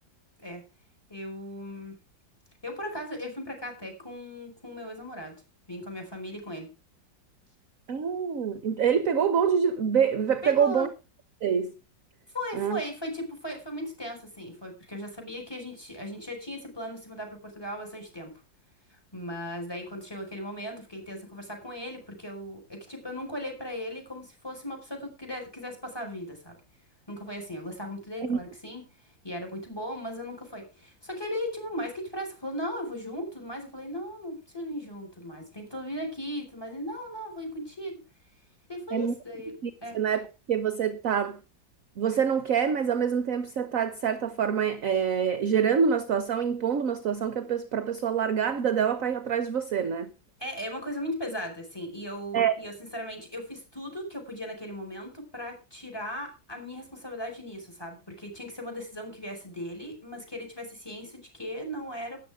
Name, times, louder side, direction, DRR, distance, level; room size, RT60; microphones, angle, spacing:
voice 1, 1.1-2.0 2.6-5.3 5.7-6.7 10.4-10.9 12.3-18.4 18.9-26.5 27.1-37.9 38.7-40.0 50.4-62.2, equal, 10° left, 5.2 m, -37 dB
voice 2, 7.9-10.9 11.4-11.7 12.5-12.8 28.2-28.4 38.9-39.1 39.6-41.4 42.0-50.1 52.3-52.5, right 7 dB, 55° right, 1.1 m, -26 dB
13.0 x 10.0 x 4.9 m
omnidirectional pair, 2.0 m